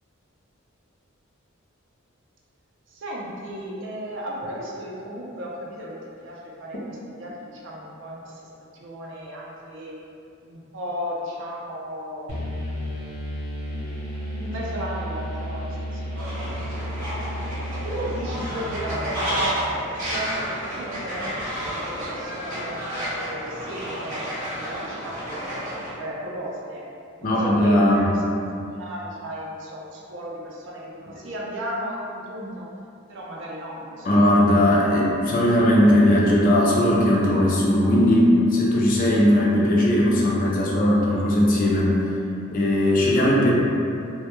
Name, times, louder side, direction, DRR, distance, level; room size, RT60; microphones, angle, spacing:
voice 1, 2.9-8.4 8.7-10.0 10.4-12.5 14.3-16.3 17.8-26.9 27.2-28.2 28.7-32.7 33.1-34.2 43.1-43.5, equal, 60° right, -3 dB, 0.4 m, -35 dB
sound 1, 12.3-20.0, equal, 70° left, 0.8 m, -33 dB
Fowl, 16.2-25.9, equal, 35° right, 0.8 m, -31 dB
voice 2, 27.2-28.0 31.1-31.2 34.0-41.9 42.5-43.5, left 1 dB, 40° left, -5 dB, 0.4 m, -18 dB
2.1 x 2.1 x 2.9 m, 2.6 s
head